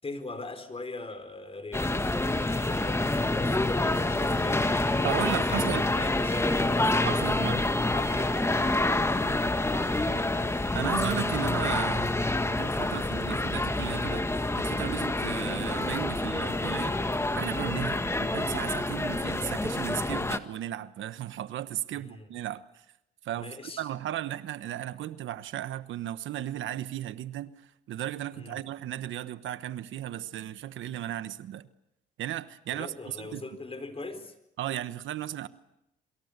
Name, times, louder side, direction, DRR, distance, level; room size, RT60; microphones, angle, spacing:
voice 1, 0.0-5.0 5.5-10.0 17.8-18.1 21.9-22.3 23.3-23.9 28.3-28.6 32.7-34.3, left 3 dB, 30° left, 4.5 m, -42 dB
sound 1, 1.7-20.4, left 2 dB, 15° left, 1.6 m, -27 dB
voice 2, 5.0-5.9 7.0-7.6 10.7-12.1 12.5-14.3 14.6-17.0 17.4-22.8 23.2-27.5 27.9-31.7 32.2-33.4 34.6-35.5, right 12 dB, 75° right, 1.2 m, -35 dB
27.5 x 25.0 x 6.8 m
cardioid pair, 90°, 20 cm